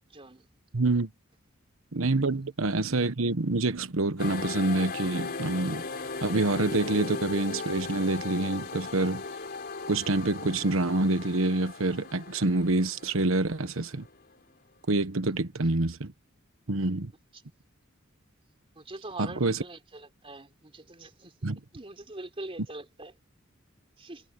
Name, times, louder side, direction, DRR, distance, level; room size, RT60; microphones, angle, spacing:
voice 1, 0.1-0.4 18.8-21.3 21.7-23.1 24.0-24.2, right 2 dB, 30° right, 3.5 m, -43 dB
voice 2, 0.7-1.1 1.9-5.8 6.2-9.2 9.9-14.1 14.9-16.1 16.7-17.1 19.2-19.6 21.4-21.6, right 2 dB, 80° right, 1.2 m, -27 dB
sound 1, 4.2-14.5, left 4 dB, 50° left, 4.5 m, -38 dB
head